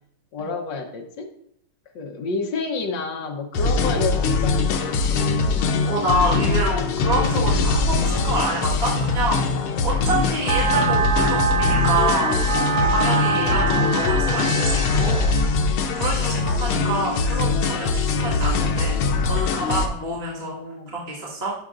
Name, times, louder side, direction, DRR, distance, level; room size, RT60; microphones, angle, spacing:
voice 1, 0.3-1.3 1.9-5.2 13.3-13.6 16.3-17.0 20.1-21.0, left 3 dB, 65° left, 2 dB, 1.7 m, -30 dB
sound 1, 3.5-19.9, left 4 dB, 85° left, 1.7 m, -22 dB
voice 2, 5.9-9.5 9.8-12.4 12.9-15.2 15.9-18.9 19.3-20.6 20.9-21.5, right 2 dB, 30° right, -5 dB, 1.9 m, -27 dB
sound 2, 10.5-15.5, right 7 dB, 65° right, 1.4 m, -25 dB
13.0 x 5.9 x 2.5 m, 0.73 s
omnidirectional pair, 2.3 m